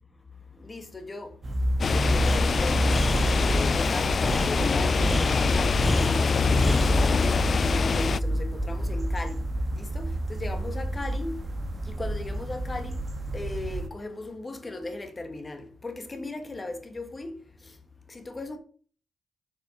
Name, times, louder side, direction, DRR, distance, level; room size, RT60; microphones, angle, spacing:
voice 1, 0.5-2.9 3.3-9.4 9.7-11.4 11.8-13.0 13.3-17.8 18.1-18.6, left 2 dB, 30° left, 1.5 m, -37 dB
sound 1, 1.4-13.9, right 1 dB, 40° right, 1.2 m, -29 dB
sound 2, 1.8-8.2, left 5 dB, 50° left, 0.3 m, -24 dB
Breathing, 2.2-7.0, equal, ahead, 0.6 m, -32 dB
7.2 x 5.2 x 5.8 m
cardioid pair, 65°, 0 cm